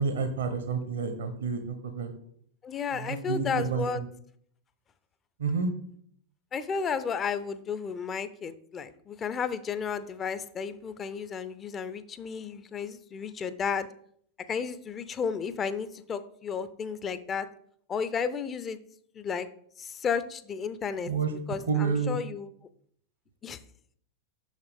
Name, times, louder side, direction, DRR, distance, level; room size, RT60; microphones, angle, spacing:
voice 1, 0.0-2.1 3.0-4.0 5.4-5.7 21.0-21.3 21.7-22.2, right 5 dB, 65° right, 8 dB, 0.9 m, -29 dB
voice 2, 2.6-4.0 6.5-13.9 14.5-17.5 17.9-18.8 19.1-19.5 19.8-21.1 21.5-22.5 23.4-23.6, left 6 dB, 25° left, 13 dB, 0.5 m, -33 dB
6.4 x 6.0 x 3.5 m, 0.63 s
figure-of-eight pair, 90°, 0 cm